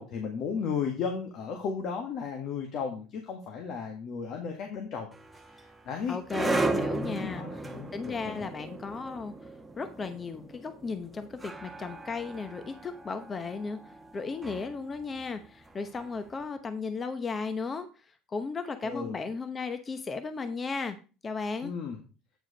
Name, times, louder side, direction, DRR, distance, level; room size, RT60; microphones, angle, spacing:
voice 1, 0.0-5.1 5.5-6.2 6.7-8.5 18.8-19.2 21.6-22.0, left 6 dB, 55° left, 2 dB, 1.7 m, -35 dB
sound 1, 5.1-16.2, right 2 dB, 10° right, 1.1 m, -36 dB
voice 2, 6.1-9.3 9.8-13.8 14.1-21.0 21.2-21.7, left 4 dB, 25° left, 9 dB, 0.9 m, -35 dB
9.0 x 4.9 x 5.1 m, 0.34 s
cardioid pair, 125°, 0 cm